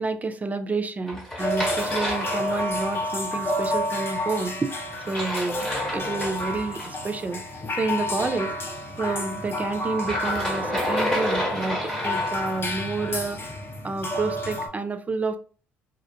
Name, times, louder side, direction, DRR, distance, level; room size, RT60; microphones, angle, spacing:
voice 1, 0.0-4.8 5.1-7.4 7.7-8.5 9.0-13.5 13.8-15.4, right 3 dB, 25° right, 0.3 m, -29 dB
sound 1, 1.1-3.1 5.0-6.9 9.9-12.6, equal, 5° left, 1.1 m, -30 dB
sound 2, 1.4-14.7, left 1 dB, 35° left, 0.6 m, -30 dB
2.4 x 2.1 x 2.7 m
hypercardioid pair, 55°, 7 cm